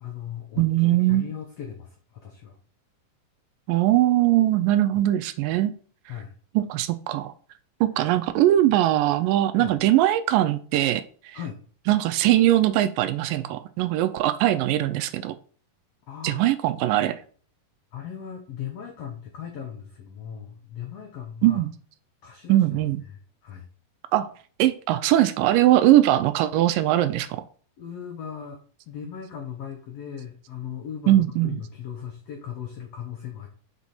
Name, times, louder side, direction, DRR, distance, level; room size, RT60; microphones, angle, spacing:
voice 1, 0.0-2.6 6.1-6.3 9.6-9.8 11.3-11.6 16.1-16.4 17.9-21.6 22.2-23.7 27.8-33.5, left 8 dB, 80° left, 1.4 m, -38 dB
voice 2, 0.6-1.2 3.7-5.7 6.6-7.3 7.8-11.4 11.9-15.3 16.2-17.2 21.4-21.7 22.5-23.0 24.1-24.3 24.6-27.4 31.1-31.6, right 14 dB, 80° right, 2.1 m, -21 dB
5.9 x 5.2 x 4.1 m
omnidirectional pair, 4.1 m